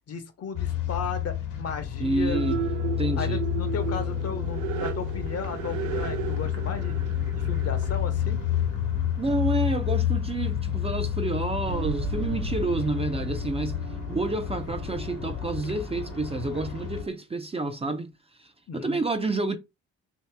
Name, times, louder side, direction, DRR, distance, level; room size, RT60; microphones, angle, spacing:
voice 1, 0.1-2.4 3.2-6.9 7.4-8.4 18.7-19.0, left 5 dB, 55° left, 0.9 m, -35 dB
sound 1, 0.6-17.0, left 10 dB, 80° left, 1.1 m, -30 dB
voice 2, 2.0-2.7 3.0-3.4 9.2-13.8 14.1-18.1 18.4-18.5 18.7-19.6, right 2 dB, 20° right, 0.5 m, -29 dB
sound 2, 2.3-9.7, right 11 dB, 75° right, 0.6 m, -35 dB
sound 3, 11.6-17.1, right 6 dB, 50° right, 1.2 m, -38 dB
2.9 x 2.7 x 3.3 m
cardioid pair, 90°, 30 cm